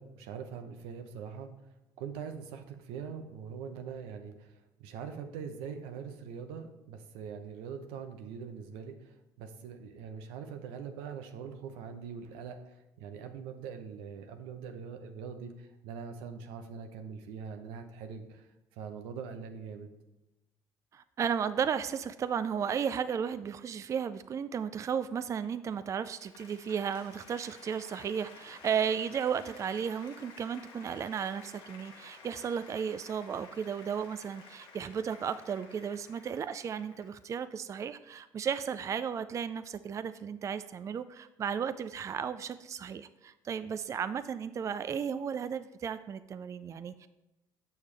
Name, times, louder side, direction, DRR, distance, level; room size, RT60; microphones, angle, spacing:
voice 1, 0.0-1.5 2.0-4.5 4.8-8.9 9.4-12.6 13.0-18.4 18.8-19.9, right 6 dB, 90° right, 7 dB, 0.8 m, -42 dB
voice 2, 20.9-47.1, right 7 dB, 35° right, 12 dB, 0.3 m, -34 dB
Applause, 25.7-37.3, left 5 dB, 80° left, 1.2 m, -53 dB
7.0 x 6.5 x 3.3 m, 0.97 s
supercardioid pair, 80°, 9 cm